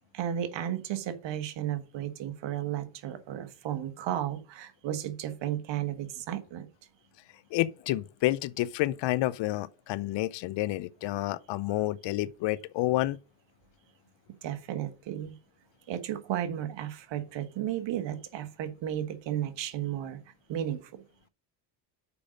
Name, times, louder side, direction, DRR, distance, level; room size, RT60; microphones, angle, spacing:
voice 1, 0.1-6.7 14.4-15.4 15.9-20.2 20.5-21.0, right 11 dB, 65° right, 1.4 m, -34 dB
voice 2, 7.5-13.2, left 16 dB, 65° left, 0.6 m, -29 dB
6.9 x 5.1 x 6.4 m
supercardioid pair, 80°, 46 cm